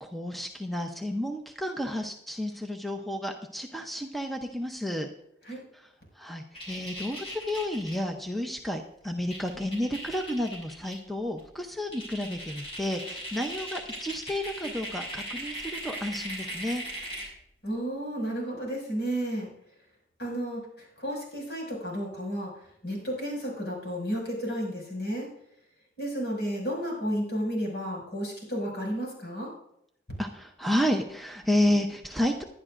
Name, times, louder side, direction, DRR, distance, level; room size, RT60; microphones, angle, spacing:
voice 1, 0.0-5.1 5.7-5.9 6.2-16.8 30.2-32.4, left 1 dB, ahead, 3 dB, 0.7 m, -31 dB
sound 1, 6.5-8.0 9.0-9.1 9.3-10.9 11.4-11.5 11.9-17.4, equal, 30° left, 5.1 m, -38 dB
voice 2, 17.6-19.5 20.2-22.5 22.8-25.3 26.0-29.5, equal, 70° left, -2 dB, 6.1 m, -32 dB
20.0 x 11.0 x 2.6 m, 0.77 s
head